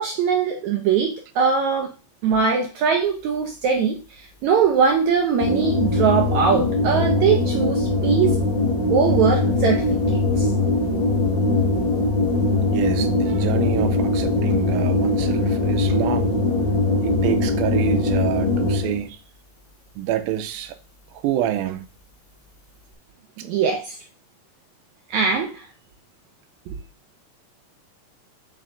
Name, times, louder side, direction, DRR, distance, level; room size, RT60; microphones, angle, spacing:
voice 1, 0.0-1.9 2.2-4.0 4.4-8.4 8.9-9.8 10.4-10.5 23.4-24.0 25.1-25.7, right 6 dB, 75° right, 1.8 m, -21 dB
sound 1, 5.4-19.1, left 2 dB, 65° left, 0.5 m, -21 dB
voice 2, 12.7-16.4 17.0-19.2 20.0-20.8 21.1-21.9, right 12 dB, 90° right, 2.5 m, -27 dB
7.6 x 5.5 x 2.6 m
omnidirectional pair, 4.1 m